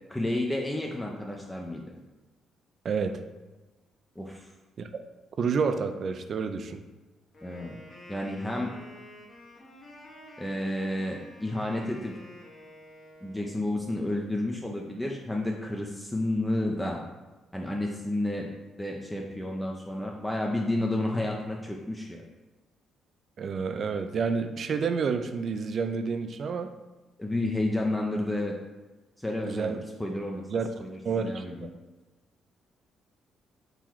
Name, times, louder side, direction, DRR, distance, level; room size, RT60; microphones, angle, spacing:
voice 1, 0.1-1.9 4.2-4.5 7.4-7.8 8.1-8.7 10.4-12.2 13.2-17.0 17.5-18.5 18.8-22.2 27.2-28.5 29.2-29.7 30.0-30.4 30.8-31.7, left 1 dB, 10° left, 0 dB, 0.5 m, -31 dB
voice 2, 2.8-3.2 4.8-5.0 5.4-6.8 23.4-26.7 29.4-29.8 30.5-30.7 31.0-31.7, right 5 dB, 55° right, 9 dB, 0.4 m, -29 dB
Wind instrument woodwind instrument, 7.3-13.6, left 1 dB, 40° left, 1.2 m, -49 dB
3.8 x 2.9 x 4.5 m, 1.2 s
cardioid pair, 90°, 0 cm